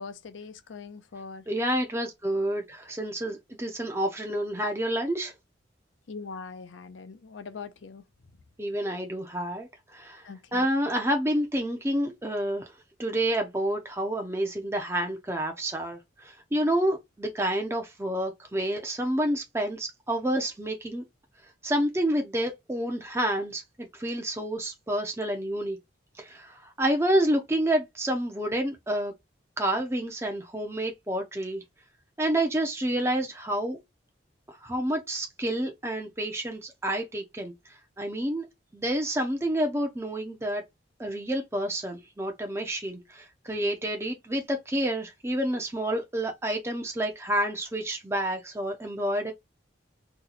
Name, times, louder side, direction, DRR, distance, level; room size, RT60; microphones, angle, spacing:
voice 1, 0.0-1.4 6.1-8.0 10.2-10.7, left 4 dB, 75° left, 0.5 m, -41 dB
voice 2, 1.5-5.3 8.6-10.3 10.5-12.7 13.0-21.0 21.6-25.8 26.2-29.1 29.6-31.6 32.2-33.8 34.6-37.5 38.0-38.5 38.7-40.6 41.0-49.3, right 1 dB, 15° right, 0.5 m, -29 dB
2.8 x 2.2 x 3.9 m
head